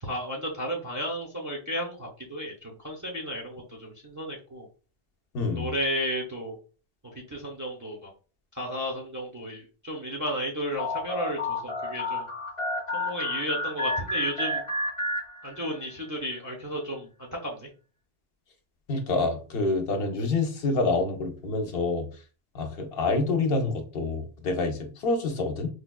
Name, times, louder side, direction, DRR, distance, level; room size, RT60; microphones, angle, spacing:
voice 1, 0.0-4.7 5.5-6.6 7.3-8.1 8.5-12.3 12.9-14.6 15.4-17.7, equal, 20° right, -2 dB, 0.5 m, -33 dB
voice 2, 5.3-5.7 18.9-22.0 22.5-25.7, left 3 dB, 65° left, 5 dB, 0.8 m, -27 dB
sound 1, 10.8-15.9, left 1 dB, 35° left, 0.7 m, -31 dB
4.6 x 2.2 x 2.3 m, 0.37 s
omnidirectional pair, 1.1 m